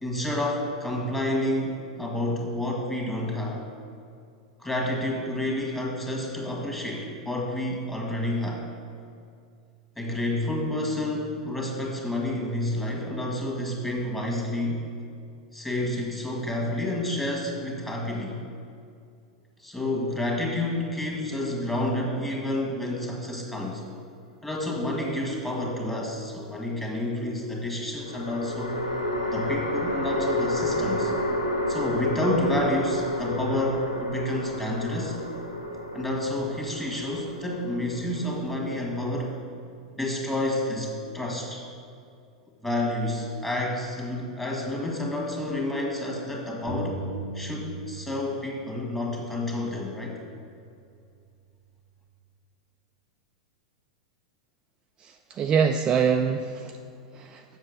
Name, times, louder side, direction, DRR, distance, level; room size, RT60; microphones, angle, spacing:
voice 1, 0.0-3.7 4.6-8.7 10.0-14.8 15.5-18.4 19.6-23.8 24.4-28.8 29.3-31.1 31.7-35.2 35.9-39.3 40.0-41.6 42.6-47.0 47.3-50.2, left 1 dB, 10° left, -1 dB, 1.8 m, -29 dB
sound 1, 24.9-25.8 28.1-39.4, left 1 dB, 90° left, 1.0 m, -31 dB
sound 2, 46.7-48.2 48.4-50.2, right 1 dB, 25° left, 1.6 m, -38 dB
voice 2, 55.0-56.8 57.1-57.4, right 7 dB, 25° right, 5 dB, 0.4 m, -25 dB
7.3 x 6.5 x 6.5 m, 2.4 s
figure-of-eight pair, 95°, 3 cm